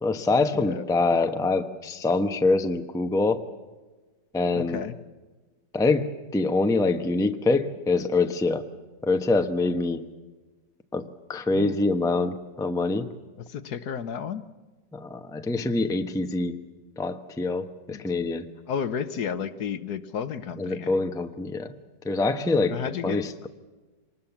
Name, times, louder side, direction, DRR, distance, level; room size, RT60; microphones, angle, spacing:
voice 1, 0.0-3.4 4.3-4.9 5.7-8.7 9.0-10.1 10.9-13.1 14.9-16.6 17.0-18.5 20.6-21.7 22.0-23.5, left 3 dB, 5° left, 7 dB, 0.7 m, -25 dB
voice 2, 0.5-0.8 4.5-4.9 11.5-11.8 13.5-14.4 17.9-18.0 18.7-20.9 22.7-23.2, left 7 dB, 65° left, 12 dB, 1.4 m, -32 dB
25.5 x 20.0 x 7.2 m, 1.2 s
omnidirectional pair, 2.0 m